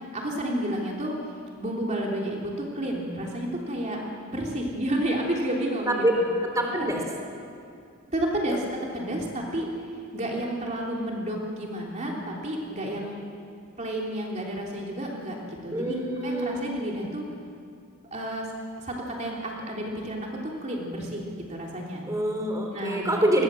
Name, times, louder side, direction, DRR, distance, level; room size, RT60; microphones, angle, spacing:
voice 1, 0.1-1.1 1.6-4.0 4.3-6.0 6.7-6.9 8.1-8.6 8.9-9.7 10.1-13.2 13.8-16.0 16.2-17.2 18.1-18.5 18.8-22.0 22.7-23.1, right 1 dB, 35° right, -2 dB, 3.4 m, -31 dB
voice 2, 6.4-7.0 15.7-16.6 22.1-23.4, right 1 dB, 15° right, 1 dB, 3.6 m, -25 dB
29.5 x 21.5 x 7.7 m, 2.3 s
head